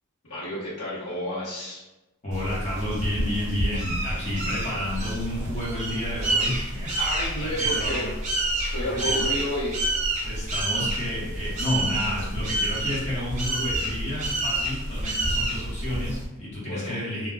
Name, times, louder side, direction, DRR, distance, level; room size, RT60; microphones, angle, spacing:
voice 1, 0.2-1.8 7.0-8.1 8.5-9.8 16.6-17.0, left 1 dB, 75° left, -10 dB, 0.9 m, -31 dB
voice 2, 2.2-6.9 7.4-8.1 8.8-9.2 10.2-17.3, left 1 dB, 30° left, -7 dB, 0.7 m, -31 dB
sound 1, 2.3-16.2, right 1 dB, 35° right, 0.6 m, -28 dB
2.2 x 2.0 x 3.3 m, 1.0 s
head